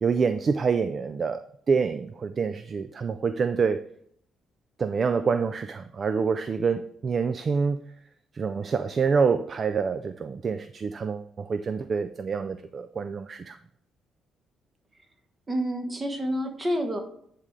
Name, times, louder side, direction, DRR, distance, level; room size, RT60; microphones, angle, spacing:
voice 1, 0.0-3.9 4.8-7.8 8.3-13.6, right 5 dB, 45° right, 0.3 m, -27 dB
voice 2, 15.5-17.0, equal, 25° right, 1.2 m, -28 dB
9.6 x 3.7 x 3.2 m
cardioid pair, 90°, 0 cm